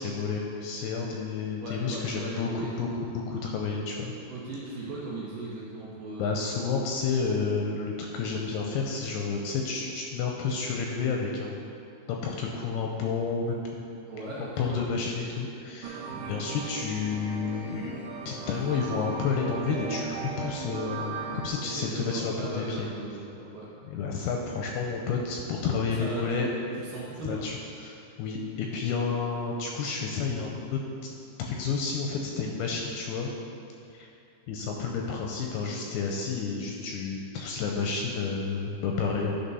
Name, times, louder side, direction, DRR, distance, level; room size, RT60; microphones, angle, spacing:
voice 1, 0.0-4.1 6.2-11.7 12.1-13.8 14.6-18.0 18.3-22.9 23.8-26.5 27.3-30.8 31.4-33.3 33.9-34.1 34.5-39.5, left 5 dB, 80° left, 0 dB, 2.4 m, -30 dB
voice 2, 1.6-2.7 4.3-6.5 14.1-14.8 16.1-16.3 21.6-23.7 26.0-26.5 26.8-27.4, right 2 dB, 70° right, -7 dB, 2.3 m, -38 dB
sound 1, 15.8-21.5, right 5 dB, 85° right, 2.9 m, -37 dB
11.5 x 4.3 x 5.4 m, 2.5 s
omnidirectional pair, 5.0 m